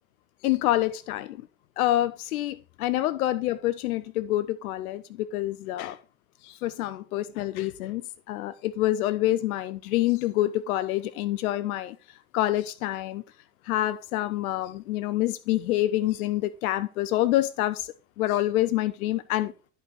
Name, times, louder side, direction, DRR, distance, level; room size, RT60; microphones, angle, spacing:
voice 1, 0.4-1.4 1.8-6.0 6.4-13.2 13.6-19.5, left 15 dB, 65° left, 0.6 m, -27 dB
11.5 x 5.5 x 4.2 m
figure-of-eight pair, 75°, 47 cm